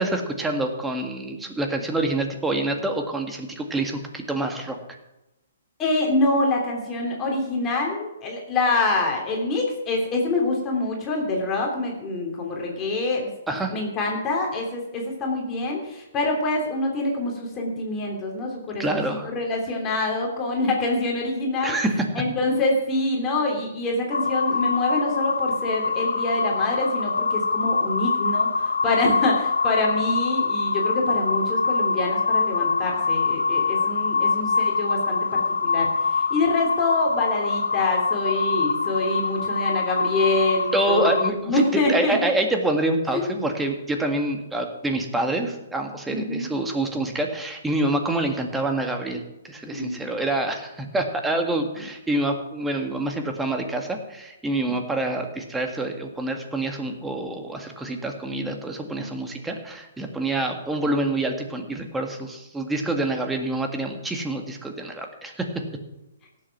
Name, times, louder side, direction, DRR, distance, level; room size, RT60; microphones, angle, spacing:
voice 1, 0.0-4.8 13.5-13.8 18.8-19.3 21.6-22.1 40.7-65.6, right 2 dB, 5° right, 4 dB, 1.9 m, -26 dB
voice 2, 5.8-13.3 13.7-21.8 22.1-42.1 43.1-43.3 46.1-46.5 49.6-50.0 51.8-51.9, left 2 dB, 25° left, 0 dB, 3.2 m, -25 dB
sound 1, 24.1-41.3, left 4 dB, 85° left, 0.7 m, -24 dB
17.0 x 7.7 x 6.0 m, 0.93 s
hypercardioid pair, 130°, 0 cm